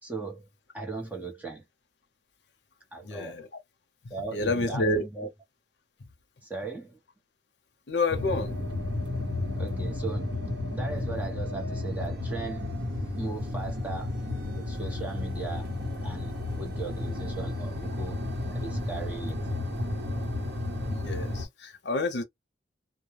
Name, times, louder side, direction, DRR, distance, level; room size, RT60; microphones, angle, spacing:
voice 1, 0.0-0.5 0.7-1.6 2.9-3.4 4.1-5.3 6.4-7.0 9.6-10.4 10.7-12.8 13.2-14.1 14.5-15.7 16.0-19.4, right 3 dB, 10° right, 0.8 m, -38 dB
voice 2, 3.0-3.5 4.3-5.1 7.9-8.6 20.9-22.2, left 2 dB, 70° left, 0.7 m, -29 dB
sound 1, 8.1-21.5, left 2 dB, 60° right, 1.0 m, -32 dB
2.2 x 2.2 x 3.1 m
head